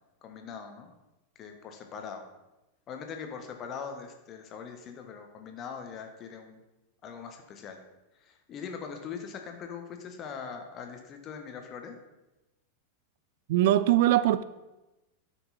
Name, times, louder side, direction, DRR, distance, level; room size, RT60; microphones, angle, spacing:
voice 1, 0.2-0.9 1.3-2.3 2.9-6.6 7.0-7.8 8.2-12.0, left 6 dB, 30° left, 5 dB, 1.3 m, -41 dB
voice 2, 13.5-14.4, right 13 dB, 50° right, 15 dB, 0.3 m, -22 dB
12.0 x 6.1 x 4.2 m, 1.0 s
figure-of-eight pair, 90°, 0 cm